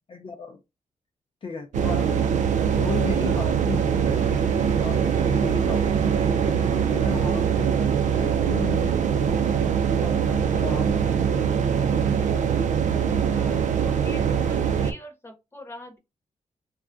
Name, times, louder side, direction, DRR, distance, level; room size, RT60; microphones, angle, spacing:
voice 1, 0.1-0.6 1.4-2.3 2.6-4.2 4.8-6.1 6.8-7.8 8.1-9.1 10.0-11.4, left 5 dB, 40° left, 0.5 m, -35 dB
sound 1, 1.7-14.9, right 7 dB, 80° right, 0.4 m, -23 dB
Wind instrument woodwind instrument, 4.0-8.2, right 4 dB, 45° right, 0.9 m, -37 dB
voice 2, 13.1-16.0, left 1 dB, 20° left, 0.8 m, -43 dB
3.3 x 2.2 x 2.5 m
cardioid pair, 100°, 13 cm